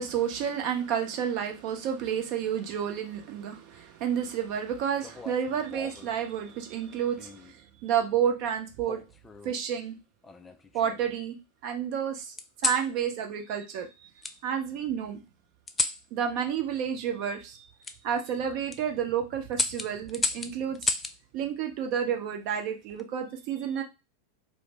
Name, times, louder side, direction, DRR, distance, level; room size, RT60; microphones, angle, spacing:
voice 1, 0.0-9.0 9.4-10.0 10.7-11.3 11.6-12.3 12.6-15.2 16.1-17.7 18.0-20.9 21.3-23.8, right 8 dB, 50° right, 4 dB, 0.7 m, -30 dB
sound 1, 5.0-6.1 7.2-7.6 8.8-9.6 10.2-11.1 12.4-12.9 14.2-14.4 15.7-16.0 17.8-18.0 18.5-18.8 19.5-21.2 22.7-23.1, left 3 dB, 15° left, 0.3 m, -33 dB
2.6 x 2.1 x 3.3 m, 0.26 s
figure-of-eight pair, 90°, 0 cm